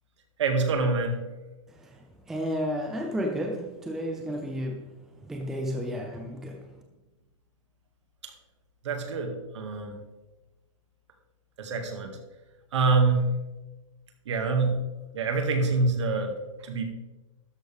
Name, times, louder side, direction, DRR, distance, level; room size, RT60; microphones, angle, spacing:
voice 1, 0.4-1.2 8.8-9.9 11.6-12.2 12.7-13.3 14.3-14.8 15.1-16.9, right 3 dB, 60° right, 4 dB, 2.1 m, -26 dB
voice 2, 2.3-4.8 5.2-6.6, equal, ahead, 3 dB, 0.4 m, -32 dB
12.5 x 9.7 x 3.5 m, 1.1 s
hypercardioid pair, 165°, 17 cm